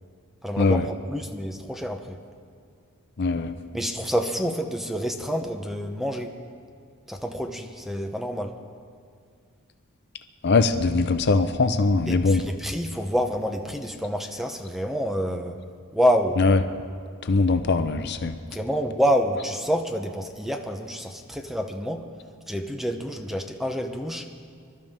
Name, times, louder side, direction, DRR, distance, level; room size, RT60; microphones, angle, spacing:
voice 1, 0.4-2.2 3.7-6.3 7.1-8.5 12.1-15.6 15.9-16.4 18.5-22.1 22.5-24.3, equal, ahead, 4 dB, 0.8 m, -27 dB
voice 2, 3.2-3.5 10.4-12.4 16.4-16.6 17.3-18.4, left 3 dB, 50° left, 9 dB, 0.6 m, -21 dB
25.5 x 12.0 x 3.7 m, 2.2 s
head